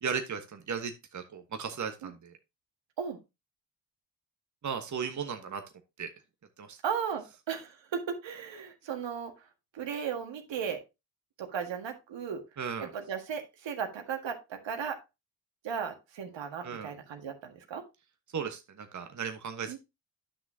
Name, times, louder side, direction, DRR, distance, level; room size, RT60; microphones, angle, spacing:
voice 1, 0.0-2.3 4.6-5.6 6.0-6.1 6.6-6.8 12.6-12.9 16.6-16.9 18.3-19.8, right 6 dB, 35° right, 6 dB, 1.2 m, -36 dB
voice 2, 6.8-9.5 9.7-10.8 11.4-12.4 12.8-15.0 15.6-17.8 19.7-19.8, right 7 dB, 65° right, 5 dB, 1.7 m, -36 dB
10.0 x 6.1 x 2.8 m, 0.25 s
hypercardioid pair, 40°, 48 cm